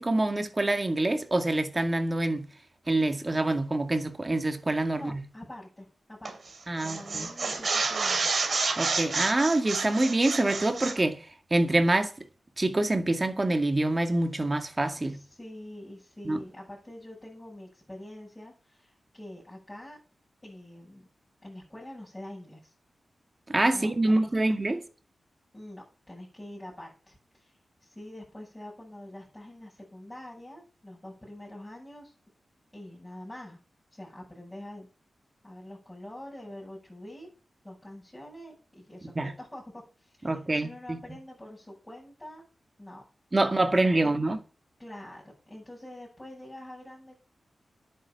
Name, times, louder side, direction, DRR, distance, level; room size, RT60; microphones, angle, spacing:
voice 1, 0.0-2.5 2.9-5.2 6.7-7.3 8.8-11.2 11.5-12.3 12.6-15.2 16.2-16.4 23.5-24.8 39.2-39.3 40.2-41.0 43.3-44.4, right 2 dB, 30° right, 2.1 m, -26 dB
voice 2, 5.0-6.5 6.8-8.5 15.1-20.0 20.4-21.1 21.4-22.7 23.7-24.7 25.5-32.1 32.7-33.6 33.9-34.9 35.4-37.3 37.6-42.4 42.8-43.0 43.4-43.5 44.0-44.1 44.8-47.2, left 1 dB, 15° left, 8.0 m, -45 dB
sound 1, 6.2-6.5 6.8-11.0, right 4 dB, 60° right, 2.9 m, -29 dB
10.5 x 9.3 x 5.9 m
cardioid pair, 75°, 0 cm